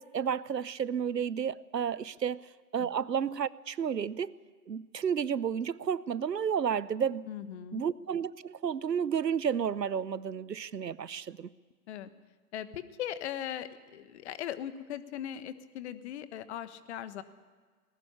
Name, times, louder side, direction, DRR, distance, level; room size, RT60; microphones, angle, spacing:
voice 1, 0.0-2.4 2.7-4.3 4.7-7.3 7.7-11.5, right 7 dB, 85° right, 0.8 m, -31 dB
voice 2, 7.3-7.8 11.9-12.1 12.5-17.2, left 10 dB, 45° left, 1.4 m, -39 dB
19.5 x 18.0 x 9.9 m
figure-of-eight pair, 120°, 48 cm